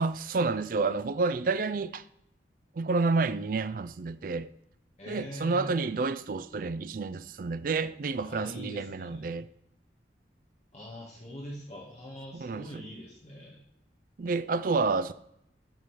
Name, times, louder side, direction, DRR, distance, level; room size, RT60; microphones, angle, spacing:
voice 1, 0.0-2.0 2.8-4.5 5.1-9.5 12.3-12.8 14.2-15.1, right 4 dB, 50° right, 0.4 m, -29 dB
voice 2, 5.0-5.9 8.2-9.3 10.7-13.6, equal, 40° left, 1.5 m, -43 dB
10.5 x 3.7 x 6.4 m
head